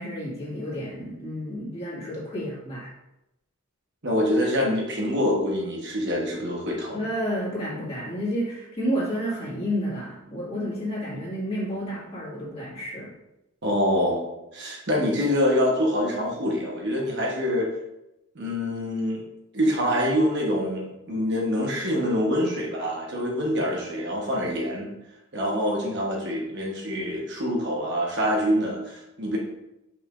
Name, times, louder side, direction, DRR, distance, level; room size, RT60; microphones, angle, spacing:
voice 1, 0.0-2.9 6.9-13.1, equal, 25° left, -7 dB, 2.1 m, -30 dB
voice 2, 4.0-7.0 13.6-17.7 18.3-19.2 19.5-24.9 25.3-29.4, equal, 50° right, -1 dB, 1.2 m, -25 dB
7.3 x 5.9 x 2.6 m, 0.90 s
head